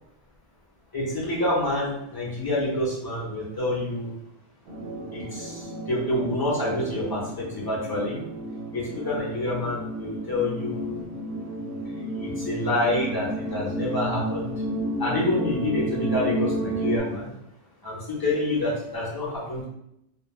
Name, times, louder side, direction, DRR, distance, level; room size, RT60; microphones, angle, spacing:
voice 1, 0.9-4.1 5.1-8.2 8.7-11.0 12.2-14.5 15.0-17.3 17.8-19.6, left 1 dB, 20° left, -6 dB, 0.7 m, -27 dB
sound 1, 4.7-17.0, right 1 dB, 65° right, 0.9 m, -32 dB
2.4 x 2.1 x 3.2 m, 0.80 s
omnidirectional pair, 1.2 m